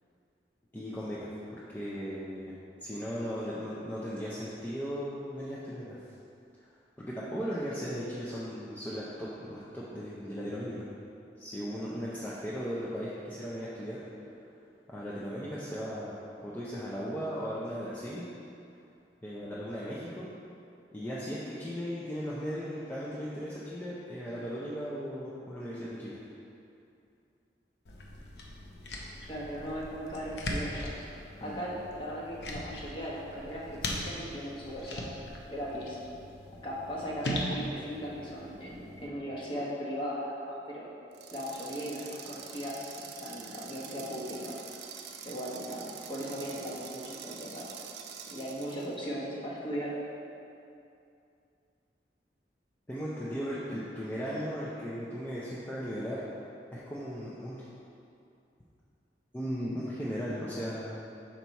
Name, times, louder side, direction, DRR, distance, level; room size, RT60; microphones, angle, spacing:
voice 1, 0.7-2.5 2.8-6.0 7.0-10.9 11.4-14.0 14.9-16.2 16.4-18.2 19.2-20.3 20.9-26.2 31.4-31.6 52.9-56.2 56.7-57.7 59.3-61.0, equal, 10° left, -8 dB, 0.5 m, -37 dB
sound 1, 27.9-39.1, left 1 dB, 80° left, 0.7 m, -40 dB
voice 2, 29.3-30.9 31.4-35.2 35.5-36.0 36.6-40.9 41.3-44.6 45.2-47.7 48.3-50.0, equal, 30° left, -6 dB, 1.1 m, -38 dB
sound 2, 41.1-48.9, right 7 dB, 75° right, 0.5 m, -46 dB
6.0 x 4.5 x 4.0 m, 2.6 s
head